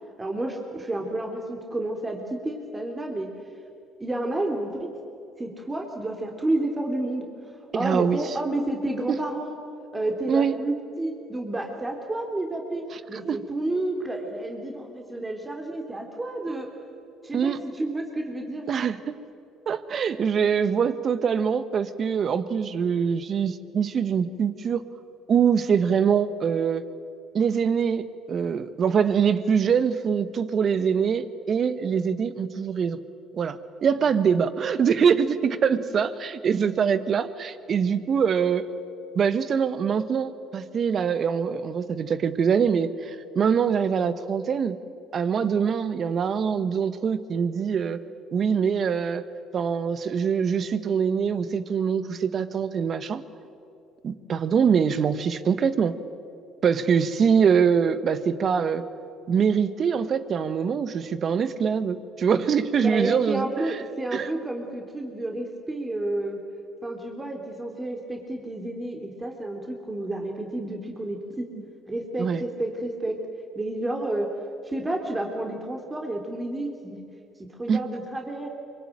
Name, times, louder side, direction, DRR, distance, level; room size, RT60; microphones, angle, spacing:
voice 1, 0.2-3.3 4.0-4.9 5.4-7.3 7.7-9.6 9.9-12.8 13.1-16.7 17.2-18.6 62.8-66.4 66.8-71.5 71.9-73.1 73.6-74.3 74.6-77.0 77.6-78.5, right 1 dB, 20° right, 2 dB, 3.5 m, -30 dB
voice 2, 7.7-8.2 9.1-9.2 10.3-10.5 12.9-13.4 17.3-17.6 18.7-19.1 19.7-24.8 25.3-26.8 27.3-33.0 33.3-38.7 39.1-44.8 45.1-48.0 48.3-49.2 49.5-53.2 54.0-55.9 56.6-58.9 59.3-63.8 64.1-64.3 72.2-72.4 77.7-77.8, right 7 dB, 50° right, 13 dB, 1.4 m, -24 dB
24.5 x 23.0 x 9.1 m, 2.6 s
hypercardioid pair, 60°, 0 cm